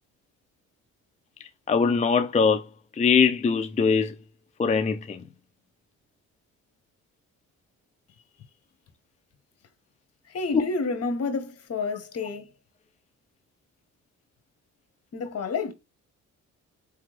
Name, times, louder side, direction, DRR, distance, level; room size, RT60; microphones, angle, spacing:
voice 1, 1.7-2.6 2.9-4.1 4.6-5.2, left 5 dB, 25° left, 0.5 m, -22 dB
voice 2, 10.3-12.5 15.1-15.7, left 4 dB, 55° left, 1.4 m, -29 dB
4.2 x 3.5 x 3.2 m
cardioid pair, 90°, 30 cm